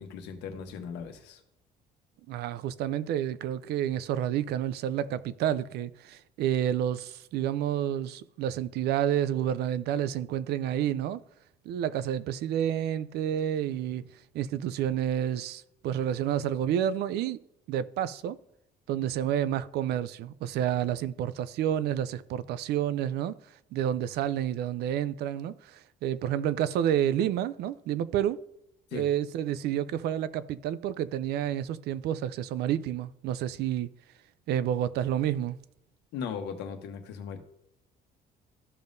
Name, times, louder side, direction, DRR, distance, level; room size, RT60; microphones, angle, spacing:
voice 1, 0.0-1.4 28.9-29.1 36.1-37.4, left 6 dB, 90° left, 1.1 m, -38 dB
voice 2, 2.3-11.2 11.7-14.1 14.3-17.4 17.7-18.4 18.9-23.4 23.7-28.4 28.9-33.9 34.5-35.6, right 10 dB, 75° right, 0.5 m, -29 dB
13.5 x 5.2 x 2.6 m
cardioid pair, 110°, 17 cm